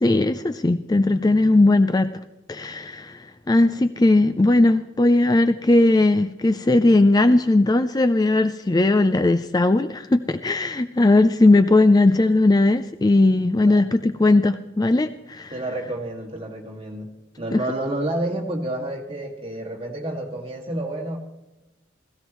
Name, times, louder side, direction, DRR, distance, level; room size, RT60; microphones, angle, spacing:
voice 1, 0.0-2.1 2.5-15.5 17.5-17.6, left 2 dB, 20° left, 10 dB, 0.4 m, -18 dB
voice 2, 15.5-17.1 17.4-21.2, right 1 dB, 30° right, 0 dB, 2.1 m, -29 dB
16.5 x 16.0 x 3.1 m, 1.0 s
head